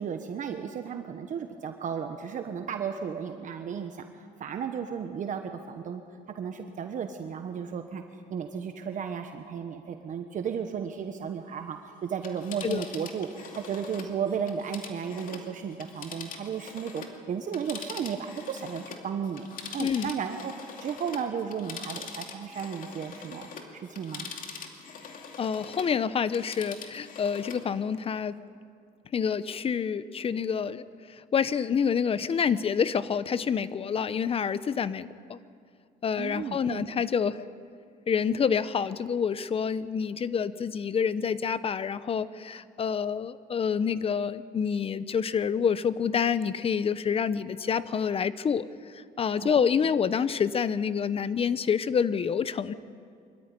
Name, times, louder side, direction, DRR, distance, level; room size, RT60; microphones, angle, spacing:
voice 1, 0.0-6.0 6.3-8.0 8.3-19.5 19.7-20.5 20.8-24.3 36.2-36.9 49.4-49.7, right 7 dB, 50° right, 6 dB, 1.3 m, -34 dB
Telephone, 12.1-17.2 17.5-26.0 26.3-27.7 28.0-28.1, left 5 dB, 55° left, 2.6 m, -43 dB
voice 2, 19.8-20.1 25.4-28.3 29.1-30.8 31.3-35.4 36.0-37.4 38.1-48.7 48.9-52.7, left 7 dB, 35° left, 15 dB, 0.8 m, -27 dB
23.5 x 13.5 x 9.9 m, 2.3 s
cardioid pair, 110°, 17 cm